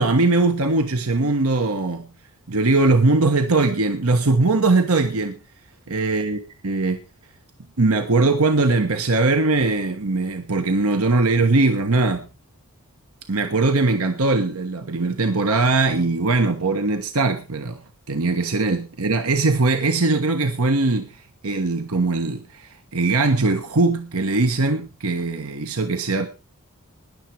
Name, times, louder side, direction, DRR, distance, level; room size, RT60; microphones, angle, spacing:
voice 1, 0.0-2.1 2.5-5.3 5.9-6.4 6.6-7.0 7.8-12.3 13.3-17.8 18.1-21.1 21.4-26.3, right 3 dB, 75° right, 1.3 m, -20 dB
20.0 x 7.4 x 4.6 m
head